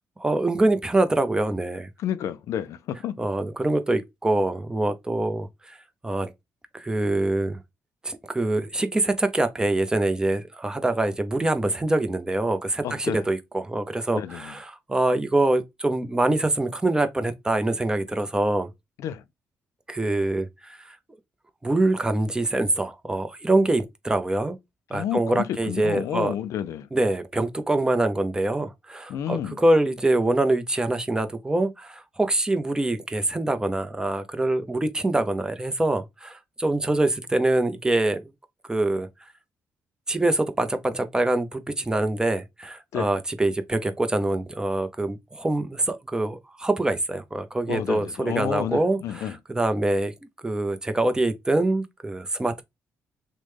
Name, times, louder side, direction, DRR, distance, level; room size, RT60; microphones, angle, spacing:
voice 1, 0.2-1.9 3.2-5.8 6.0-6.3 6.7-7.6 8.0-18.7 19.9-21.0 21.6-24.6 24.9-26.3 26.9-38.2 38.7-39.1 40.1-50.1 50.4-52.6, right 2 dB, 15° right, 0.6 m, -24 dB
voice 2, 2.0-3.1 12.8-13.2 14.2-14.5 19.0-19.2 24.9-26.9 29.1-29.6 42.9-43.1 47.7-49.4, left 10 dB, 75° left, 0.4 m, -30 dB
3.0 x 2.1 x 3.2 m
cardioid pair, 90°, 5 cm